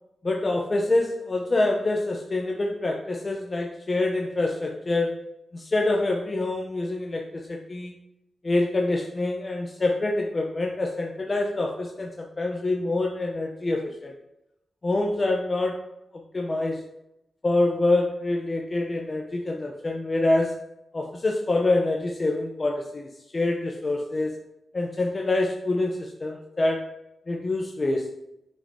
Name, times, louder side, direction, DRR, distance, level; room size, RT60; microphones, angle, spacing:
voice 1, 0.2-5.3 5.5-7.9 8.4-14.1 14.8-15.8 16.3-16.8 17.4-20.6 20.9-24.4 24.7-26.9 27.3-28.1, left 2 dB, 35° left, 1 dB, 0.6 m, -26 dB
6.8 x 5.1 x 2.7 m, 0.87 s
cardioid pair, 85°, 0 cm